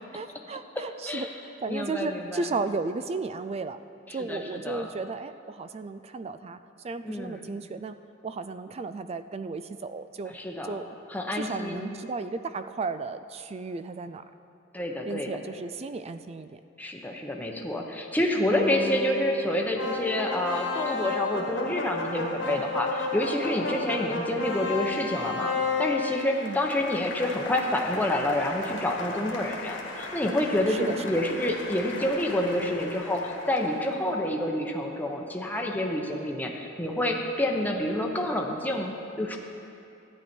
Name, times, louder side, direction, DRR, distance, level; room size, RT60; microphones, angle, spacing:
voice 1, 0.1-3.8 4.1-6.6 6.8-8.0 8.2-10.3 10.7-10.9 11.3-14.2 15.1-16.6 26.4-26.6 30.7-31.0, right 3 dB, 35° right, 11 dB, 0.4 m, -34 dB
voice 2, 1.7-2.5 4.1-4.9 7.0-7.4 10.2-10.8 11.1-11.9 14.7-15.3 16.8-39.4, left 1 dB, 10° left, 1 dB, 0.9 m, -28 dB
sound 1, 18.5-21.0, left 4 dB, 25° left, 1.4 m, -35 dB
sound 2, 19.7-33.9, left 3 dB, 70° left, 1.5 m, -34 dB
13.5 x 9.8 x 4.4 m, 2.6 s
head